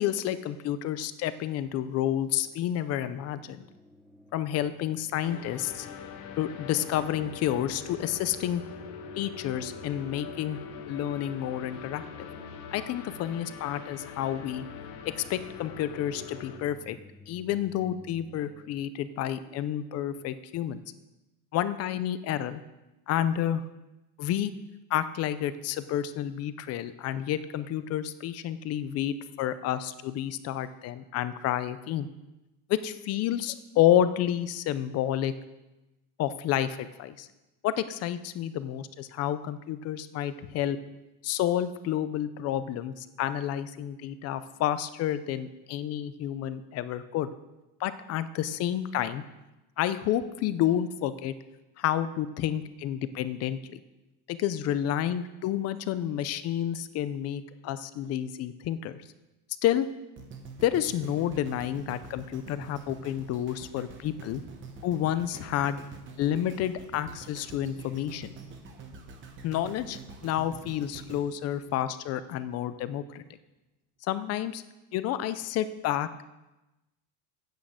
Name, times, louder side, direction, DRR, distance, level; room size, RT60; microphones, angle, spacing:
voice 1, 0.0-3.6 4.3-5.9 6.4-8.6 9.2-10.6 10.9-12.3 12.7-14.7 15.1-17.0 17.3-20.8 21.5-22.6 23.1-23.6 24.2-24.5 24.9-32.1 32.7-35.3 36.2-37.3 37.6-40.8 41.2-47.3 47.8-49.2 49.8-51.3 51.8-53.8 54.3-59.0 59.6-59.9 60.6-64.4 64.8-65.8 66.2-68.3 69.4-73.2 74.0-74.6 74.9-76.1, left 11 dB, 35° left, 13 dB, 0.4 m, -30 dB
sound 1, 2.2-20.3, left 2 dB, ahead, 0.7 m, -55 dB
sound 2, 5.2-16.6, left 6 dB, 85° left, 1.4 m, -43 dB
sound 3, 60.2-72.4 72.9-73.0, right 4 dB, 25° right, 1.1 m, -46 dB
9.5 x 6.3 x 7.9 m, 1.0 s
cardioid pair, 175°, 44 cm